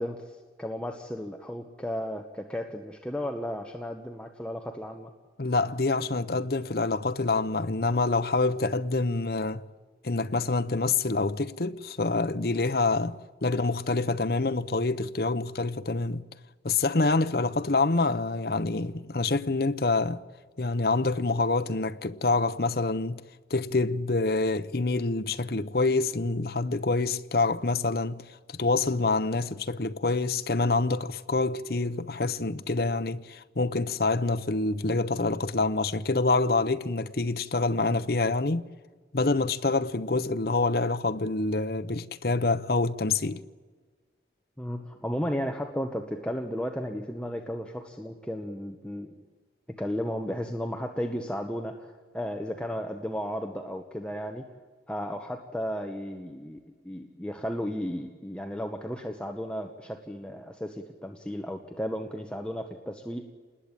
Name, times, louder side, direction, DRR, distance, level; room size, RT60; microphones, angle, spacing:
voice 1, 0.0-5.1 44.6-49.1 49.8-54.4 54.9-56.6 56.8-63.3, equal, 5° left, 1.2 m, -34 dB
voice 2, 5.4-9.6 10.0-16.2 16.6-20.2 20.6-23.2 23.5-38.7 39.1-43.4, left 3 dB, 55° left, 0.9 m, -26 dB
28.0 x 20.0 x 9.1 m
head